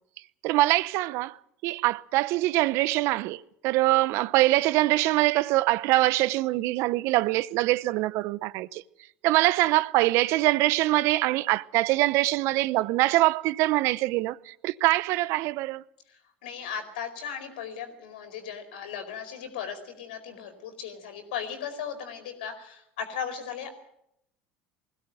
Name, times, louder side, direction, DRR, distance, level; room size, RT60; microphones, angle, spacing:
voice 1, 0.4-1.4 1.6-8.8 9.2-15.8, right 18 dB, 65° right, 0.9 m, -24 dB
voice 2, 16.4-23.7, left 7 dB, 80° left, 4.6 m, -37 dB
20.5 x 16.5 x 9.2 m
hypercardioid pair, 80°, 5 cm